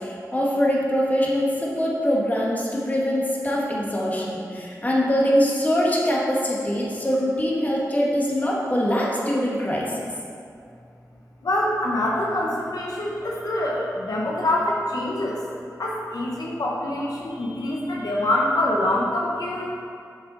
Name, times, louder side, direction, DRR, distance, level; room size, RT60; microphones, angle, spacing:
voice 1, 0.0-10.0, equal, 25° left, -4 dB, 1.6 m, -23 dB
voice 2, 11.4-15.4 15.8-19.7, left 1 dB, 80° left, -3 dB, 1.1 m, -25 dB
7.8 x 6.9 x 4.0 m, 2.4 s
wide cardioid pair, 70°, 6 cm